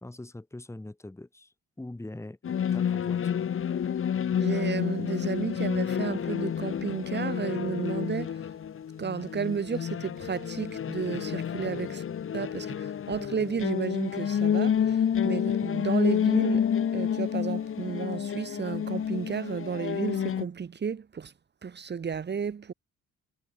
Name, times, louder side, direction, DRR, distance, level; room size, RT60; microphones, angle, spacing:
voice 1, 0.0-2.4 2.7-3.4, left 2 dB, 10° left, 2.0 m, -42 dB
sound 1, 2.4-20.4, left 8 dB, 45° left, 1.1 m, -29 dB
voice 2, 4.4-8.4 9.0-12.0 12.3-21.3 21.6-22.7, right 6 dB, 35° right, 1.2 m, -33 dB
cardioid pair, 90°, 30 cm